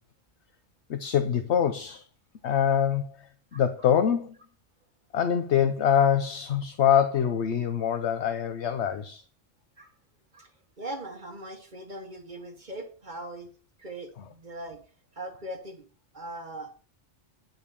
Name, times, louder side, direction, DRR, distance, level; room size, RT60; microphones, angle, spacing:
voice 1, 0.9-2.0 2.4-3.2 3.5-4.3 5.1-9.2, left 8 dB, 70° left, 1.1 m, -24 dB
voice 2, 10.8-13.5 13.8-14.8 15.1-15.8 16.1-16.7, right 1 dB, 40° right, 1.5 m, -40 dB
10.0 x 5.4 x 6.8 m
omnidirectional pair, 1.2 m